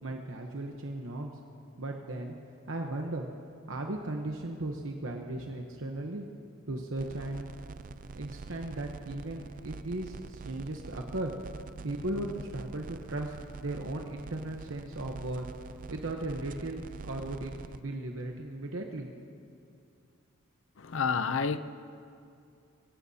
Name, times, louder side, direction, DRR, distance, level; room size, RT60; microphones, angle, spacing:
voice 1, 0.0-1.3 1.8-2.3 2.7-3.3 3.7-6.3 6.7-7.5 8.1-11.3 11.8-15.5 15.9-19.1, right 2 dB, 70° right, 1.0 m, -36 dB
sound 1, 7.0-17.8, right 4 dB, 40° right, 0.4 m, -45 dB
voice 2, 20.8-21.6, left 5 dB, 65° left, 0.6 m, -29 dB
22.5 x 18.0 x 2.8 m
head